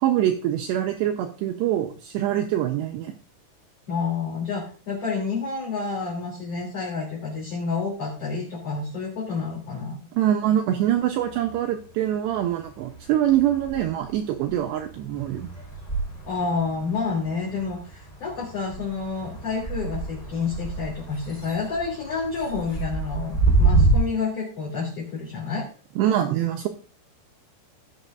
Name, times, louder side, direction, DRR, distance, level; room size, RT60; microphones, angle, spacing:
voice 1, 0.0-3.1 10.1-15.5 26.0-26.7, right 11 dB, 80° right, 3 dB, 2.6 m, -24 dB
voice 2, 3.9-10.1 16.2-25.7, left 4 dB, 35° left, -5 dB, 3.5 m, -29 dB
sound 1, 10.8-11.9 12.3-24.0, right 3 dB, 10° left, 3.3 m, -28 dB
20.5 x 7.1 x 2.6 m, 0.39 s
omnidirectional pair, 5.7 m